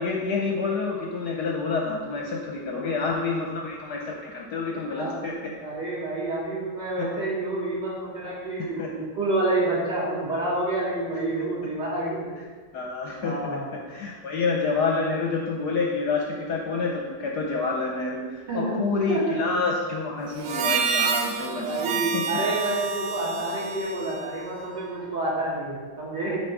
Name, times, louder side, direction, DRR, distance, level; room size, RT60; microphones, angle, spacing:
voice 1, 0.0-5.5 8.8-8.9 11.3-11.4 12.7-13.6 13.9-22.2, left 4 dB, 65° left, 0 dB, 1.1 m, -28 dB
voice 2, 2.7-3.6 5.0-5.2 5.6-12.3 13.2-13.7 18.5-18.8 19.1-19.4 21.6-26.4, right 2 dB, 55° right, -8 dB, 3.1 m, -29 dB
Harmonica, 20.4-25.0, right 6 dB, 75° right, 0.9 m, -29 dB
7.1 x 5.0 x 4.6 m, 1.5 s
omnidirectional pair, 2.2 m